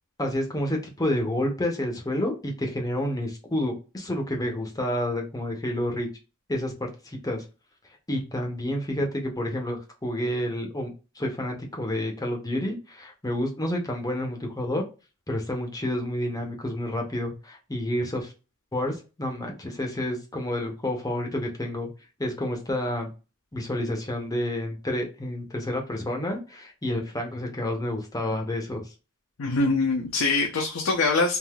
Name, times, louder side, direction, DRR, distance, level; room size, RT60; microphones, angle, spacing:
voice 1, 0.2-6.1 6.5-7.4 8.1-14.8 15.3-18.3 18.7-21.9 22.2-23.1 23.5-28.8, left 1 dB, 15° left, 2 dB, 0.6 m, -29 dB
voice 2, 29.4-31.4, left 3 dB, 75° left, 2 dB, 0.6 m, -23 dB
3.4 x 2.5 x 2.3 m, 0.30 s
head